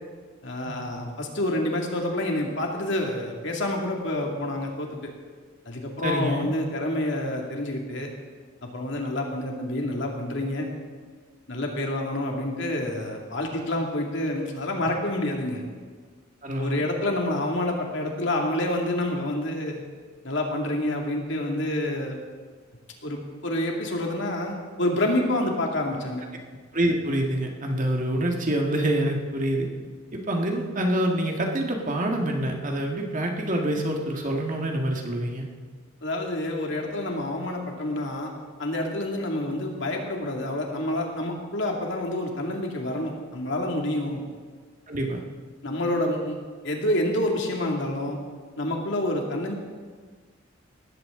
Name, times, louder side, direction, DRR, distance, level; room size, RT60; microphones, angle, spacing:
voice 1, 0.4-4.9 5.7-8.1 8.6-10.7 11.5-15.6 16.6-19.8 20.2-22.2 23.0-26.2 36.0-38.3 38.6-44.2 45.6-46.4 46.6-48.2 48.6-49.5, left 1 dB, 65° left, 1 dB, 2.4 m, -28 dB
voice 2, 6.0-6.5 16.4-16.8 26.7-29.7 30.1-35.5 44.9-45.2, right 1 dB, 40° right, 1 dB, 1.8 m, -26 dB
19.0 x 14.5 x 3.8 m, 1.5 s
head